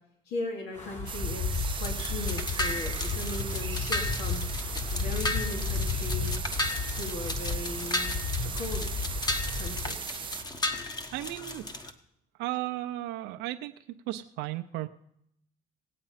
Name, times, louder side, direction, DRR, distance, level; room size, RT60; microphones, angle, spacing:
voice 1, 0.3-4.6 4.9-6.3 6.9-8.1 8.5-8.9 9.6-10.0, left 2 dB, 85° left, 2 dB, 2.6 m, -38 dB
Wind, 0.7-9.9, left 4 dB, 40° left, 3.7 m, -33 dB
sound 1, 1.1-10.4, right 8 dB, 30° right, 0.4 m, -38 dB
sound 2, 1.5-11.9, left 2 dB, 25° left, 1.3 m, -35 dB
voice 2, 11.1-11.6 12.4-13.7 14.1-14.9, right 16 dB, 90° right, 7 dB, 0.6 m, -34 dB
18.0 x 8.7 x 5.7 m, 0.75 s
cardioid pair, 110°, 17 cm